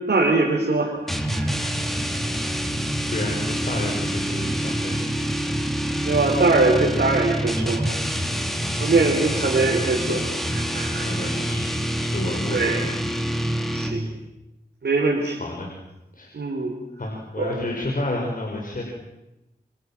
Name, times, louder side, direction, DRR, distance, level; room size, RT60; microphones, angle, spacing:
voice 1, 0.1-0.9 1.3-1.7 6.0-7.9 8.7-11.1 12.5-12.9 13.7-14.0 14.8-15.4 16.3-16.7 17.4-17.7, right 3 dB, 85° right, -1 dB, 4.5 m, -22 dB
sound 1, 1.1-14.2, equal, ahead, 4.2 m, -26 dB
voice 2, 3.1-5.1 9.0-9.4 11.0-13.0 15.4-15.7 16.1-16.3 17.0-18.8, left 1 dB, 55° left, -1 dB, 6.0 m, -31 dB
28.5 x 26.5 x 7.7 m, 0.97 s
wide cardioid pair, 70°, 17 cm